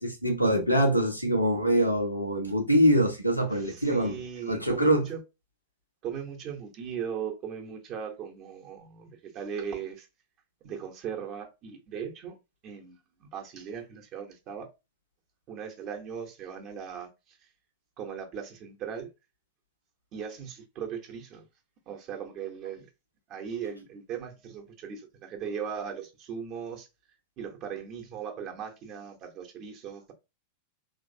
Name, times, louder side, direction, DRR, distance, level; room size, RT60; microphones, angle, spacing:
voice 1, 0.0-4.1 4.5-5.1, equal, 90° left, 1.0 m, -24 dB
voice 2, 3.6-5.2 6.0-10.1 10.6-12.4 12.6-14.7 15.5-17.1 18.0-19.1 20.1-21.4 21.9-22.9 23.3-26.9 27.4-30.1, right 7 dB, 35° right, 1.0 m, -38 dB
3.2 x 2.9 x 2.7 m
figure-of-eight pair, 90°, 0 cm